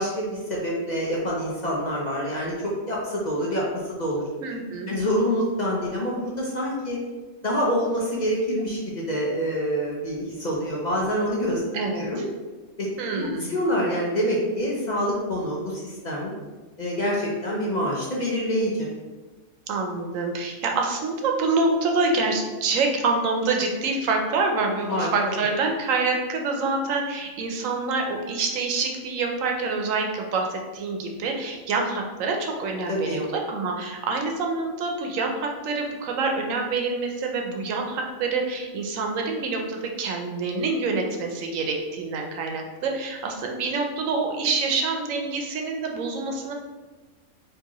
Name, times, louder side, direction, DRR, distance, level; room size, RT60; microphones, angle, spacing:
voice 1, 0.0-4.3 4.9-7.0 7.4-11.6 11.9-12.2 12.8-12.9 13.1-16.3 16.8-18.9 24.8-25.1 32.9-33.2, equal, 45° left, -4 dB, 0.6 m, -26 dB
voice 2, 4.4-4.9 11.7-12.2 13.0-13.5 19.7-46.5, right 3 dB, 85° right, 2 dB, 1.1 m, -26 dB
4.6 x 2.9 x 2.9 m, 1.3 s
omnidirectional pair, 1.3 m